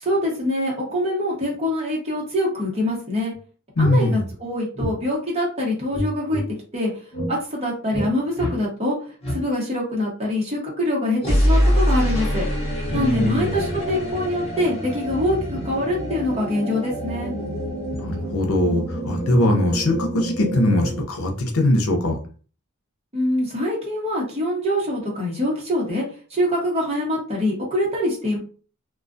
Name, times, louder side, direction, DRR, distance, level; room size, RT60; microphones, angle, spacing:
voice 1, 0.0-3.3 3.8-6.4 6.7-6.9 7.3-9.0 9.3-12.4 12.9-17.3 23.1-26.0 26.3-28.4, left 1 dB, 30° right, -4 dB, 1.0 m, -24 dB
sound 1, 3.3-3.4 3.8-3.9 4.7-4.9 5.9-6.5 7.1-7.3 7.9-8.1 8.3-8.6 9.2-9.4 11.2-21.0, equal, 30° left, 0.9 m, -25 dB
voice 2, 3.8-4.3 12.9-13.7 18.0-22.2, left 1 dB, 90° left, 3 dB, 0.6 m, -21 dB
2.4 x 2.3 x 2.5 m, 0.39 s
head